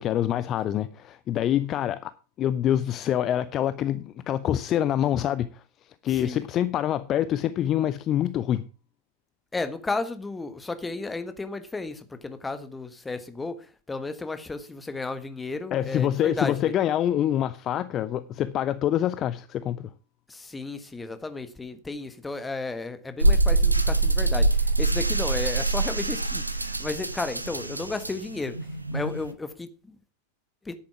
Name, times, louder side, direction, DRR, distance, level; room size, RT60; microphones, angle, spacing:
voice 1, 0.0-2.1 2.4-5.6 6.0-8.6 15.7-19.9, left 11 dB, 30° left, 0.5 m, -26 dB
voice 2, 6.1-6.4 9.5-16.7 20.3-28.6 28.9-30.0 30.6-30.7, left 3 dB, 10° left, 1.4 m, -33 dB
sound 1, 23.2-29.3, right 2 dB, 85° right, 0.9 m, -24 dB
10.5 x 8.6 x 5.9 m
figure-of-eight pair, 90°, 0 cm